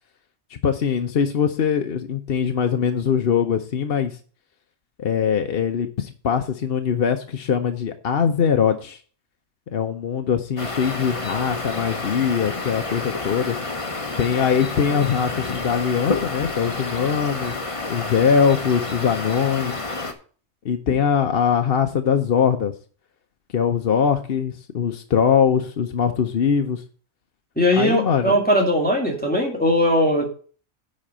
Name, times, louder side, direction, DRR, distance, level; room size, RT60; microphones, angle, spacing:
voice 1, 0.5-4.2 5.0-9.0 9.7-13.6 14.2-17.6 17.9-19.8 20.6-22.7 23.5-26.8 27.8-28.3, left 7 dB, 55° left, 6 dB, 0.9 m, -22 dB
sound 1, 10.6-20.1, left 3 dB, 25° left, 1.2 m, -29 dB
voice 2, 27.6-30.3, equal, 5° left, 0 dB, 2.2 m, -19 dB
10.5 x 4.3 x 7.3 m, 0.41 s
omnidirectional pair, 1.3 m